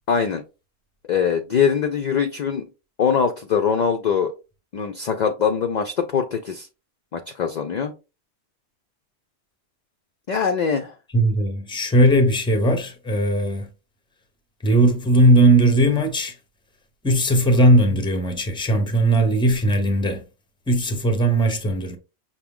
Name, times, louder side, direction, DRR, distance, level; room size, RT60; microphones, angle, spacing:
voice 1, 0.1-0.4 1.1-2.7 3.0-4.3 4.7-6.7 7.1-7.9 10.3-10.9, left 6 dB, 55° left, 0.5 m, -22 dB
voice 2, 11.1-13.7 14.6-16.3 17.0-20.2 20.7-22.0, right 1 dB, 5° left, 0.6 m, -18 dB
5.8 x 2.1 x 3.5 m
omnidirectional pair, 1.1 m